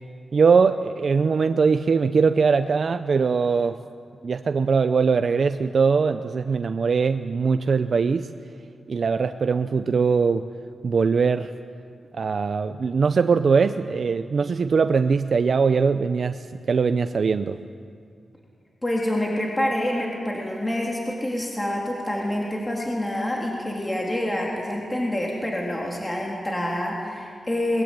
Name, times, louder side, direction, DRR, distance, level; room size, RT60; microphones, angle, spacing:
voice 1, 0.3-3.8 4.2-8.3 8.9-10.5 10.8-11.5 12.2-17.6, right 5 dB, 50° right, 9 dB, 0.6 m, -21 dB
voice 2, 18.8-27.8, left 1 dB, 15° left, -2 dB, 3.3 m, -27 dB
21.5 x 21.5 x 9.1 m, 2.2 s
wide cardioid pair, 145°, 0 cm